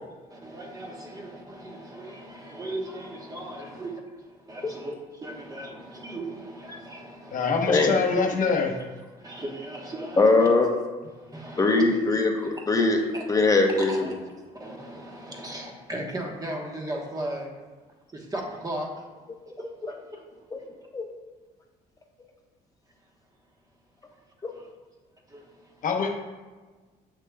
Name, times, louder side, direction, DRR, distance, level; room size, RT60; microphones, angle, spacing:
voice 1, 0.3-7.7 9.1-10.5 11.1-11.8 12.3-12.6 13.1-13.2 13.8-17.5 18.1-18.9 19.6-20.2 24.5-24.7 25.3-25.8, right 1 dB, 20° right, 0 dB, 1.2 m, -37 dB
voice 2, 7.3-8.7 25.8-26.1, left 5 dB, 50° left, 3 dB, 0.9 m, -24 dB
voice 3, 10.2-10.7 11.6-13.0 13.3-14.1 20.5-20.6 20.9-21.1 24.4-24.5, left 3 dB, 20° left, 3 dB, 0.8 m, -21 dB
7.4 x 6.4 x 2.3 m, 1.3 s
cardioid pair, 110°, 17 cm